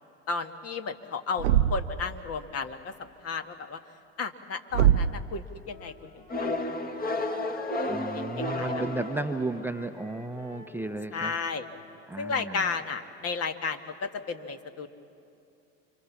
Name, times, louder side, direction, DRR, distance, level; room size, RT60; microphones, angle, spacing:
voice 1, 0.3-2.9 3.2-3.8 4.2-7.3 8.1-8.2 8.6-8.8 11.1-11.7 12.2-14.9, left 5 dB, 40° left, 7 dB, 1.7 m, -34 dB
Thump thud, 1.4-2.0 4.7-5.3, right 10 dB, 80° right, 0.8 m, -22 dB
Wind instrument woodwind instrument, 5.6-12.0, left 1 dB, 75° left, 4.3 m, -49 dB
sound 1, 6.3-9.8, left 2 dB, 25° left, 1.8 m, -32 dB
voice 2, 7.9-11.3 12.1-12.7, right 2 dB, 5° right, 9 dB, 0.9 m, -33 dB
28.5 x 25.0 x 7.3 m, 2.7 s
hypercardioid pair, 80°, 36 cm